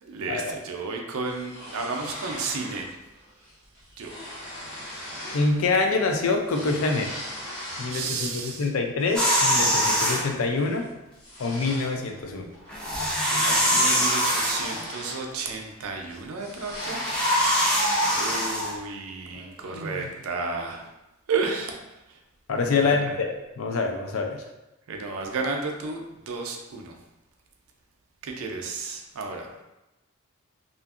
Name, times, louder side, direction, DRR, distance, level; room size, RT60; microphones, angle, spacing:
voice 1, 0.0-2.9 4.0-4.2 7.9-8.7 13.3-17.0 18.1-20.8 21.3-21.8 22.7-23.2 24.9-26.9 28.2-29.6, right 4 dB, 80° right, 2 dB, 0.4 m, -32 dB
sound 1, 1.3-2.9 3.2-3.5 3.8-5.6 5.9-8.0 8.5-10.1 10.5-10.8 11.2-15.8 16.1-18.8, left 1 dB, 55° left, 1.0 m, -37 dB
voice 2, 5.3-7.1 7.8-10.8 11.4-12.5 19.7-20.1 22.5-24.4, left 3 dB, 70° left, 3 dB, 0.4 m, -26 dB
sound 2, 9.2-10.2 12.7-14.8 16.7-18.7, equal, 5° left, 0.4 m, -23 dB
2.7 x 2.5 x 2.4 m, 0.98 s
head